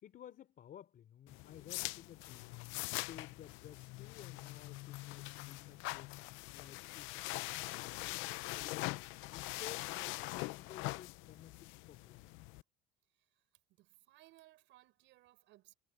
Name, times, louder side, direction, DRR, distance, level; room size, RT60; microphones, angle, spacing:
voice 1, 0.0-2.6 3.1-6.1 6.5-8.0 8.4-9.0 9.3-12.4, left 10 dB, 45° left, 3.6 m, -55 dB
sound 1, 1.3-12.6, left 21 dB, 70° left, 0.7 m, -43 dB
voice 2, 13.1-13.5 13.8-15.7, right 17 dB, 65° right, 6.3 m, -64 dB
cardioid pair, 120°, 21 cm